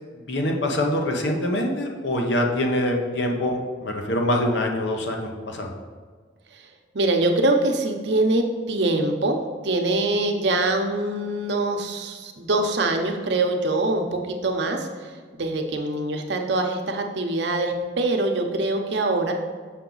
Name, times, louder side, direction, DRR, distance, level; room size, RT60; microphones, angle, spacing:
voice 1, 0.3-5.7, left 1 dB, 75° left, 2 dB, 0.9 m, -24 dB
voice 2, 6.9-9.4 9.6-19.3, right 2 dB, 70° right, 4 dB, 0.8 m, -24 dB
6.6 x 5.8 x 3.9 m, 1.5 s
head